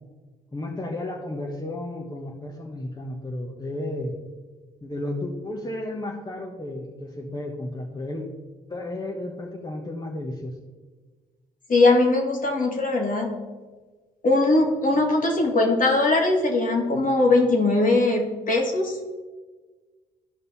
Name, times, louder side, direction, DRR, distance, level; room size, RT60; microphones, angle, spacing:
voice 1, 0.5-4.2 4.8-8.2 8.7-10.5, left 1 dB, 20° left, -1 dB, 1.6 m, -33 dB
voice 2, 11.7-13.4 14.2-19.0, left 2 dB, 45° left, 0 dB, 2.5 m, -20 dB
14.0 x 5.2 x 4.3 m, 1.4 s
hypercardioid pair, 50°, 19 cm